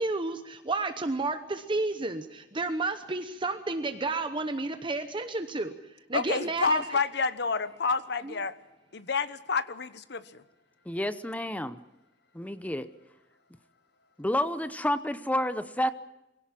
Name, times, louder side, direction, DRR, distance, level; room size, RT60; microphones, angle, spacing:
voice 1, 0.0-5.7 6.1-6.9 8.2-8.4, right 3 dB, 30° right, 8 dB, 0.9 m, -31 dB
voice 2, 6.1-8.5 8.9-10.4, left 4 dB, 65° left, 13 dB, 1.1 m, -29 dB
voice 3, 10.9-11.8 12.3-12.9 14.2-15.9, left 1 dB, 10° left, 12 dB, 0.7 m, -29 dB
24.5 x 17.0 x 7.6 m, 0.95 s
head